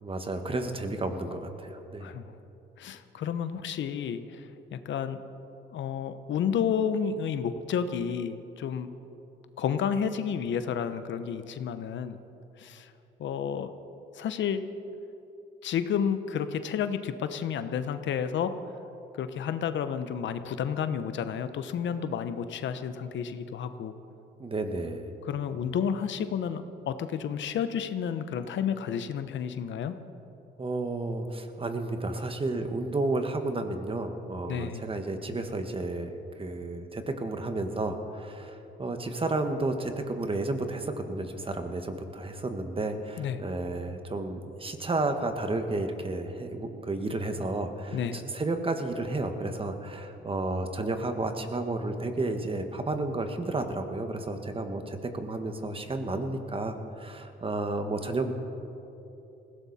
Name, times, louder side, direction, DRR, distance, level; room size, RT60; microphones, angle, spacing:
voice 1, 0.0-2.1 24.4-25.1 30.6-36.1 36.4-58.3, right 2 dB, 25° right, 6 dB, 1.6 m, -32 dB
voice 2, 2.8-5.2 5.7-8.9 9.6-12.2 12.6-12.9 13.2-13.7 14.1-14.6 15.6-18.5 19.1-23.9 25.3-29.9 34.5-34.8 43.2-43.4 47.9-48.2, left 7 dB, 70° left, 10 dB, 0.9 m, -31 dB
20.0 x 16.5 x 4.3 m, 2.9 s
cardioid pair, 90°, 20 cm